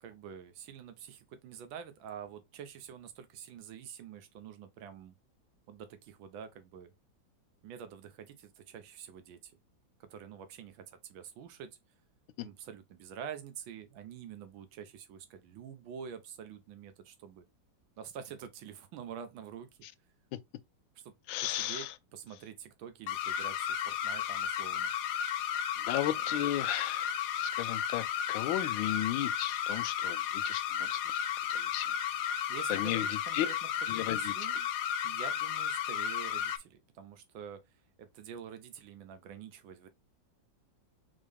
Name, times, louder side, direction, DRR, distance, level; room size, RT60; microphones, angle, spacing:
voice 1, 0.0-5.1 5.7-6.9 7.6-9.5 10.0-11.8 12.4-17.4 18.0-19.7 21.4-24.9 32.5-33.5 33.9-34.7 35.0-37.6 38.0-39.9, right 8 dB, 90° right, 1.5 m, -47 dB
voice 2, 21.3-21.9 25.8-31.2 31.5-31.9 32.7-33.5 33.9-34.5, left 13 dB, 85° left, 1.3 m, -35 dB
sound 1, 23.1-36.6, left 9 dB, 70° left, 1.1 m, -33 dB
3.7 x 3.7 x 3.4 m
omnidirectional pair, 2.1 m